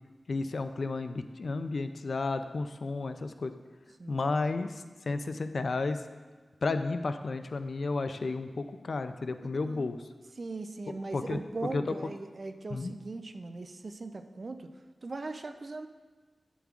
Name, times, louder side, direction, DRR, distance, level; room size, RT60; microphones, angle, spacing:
voice 1, 0.3-3.5 4.1-6.0 6.6-10.0 11.1-11.4 11.7-11.9 12.7-12.9, left 3 dB, 60° left, 9 dB, 0.3 m, -32 dB
voice 2, 4.0-4.3 9.3-9.9 10.4-14.7 15.0-15.9, right 3 dB, 45° right, 8 dB, 0.4 m, -39 dB
8.8 x 6.9 x 2.4 m, 1.4 s
wide cardioid pair, 125°, 0 cm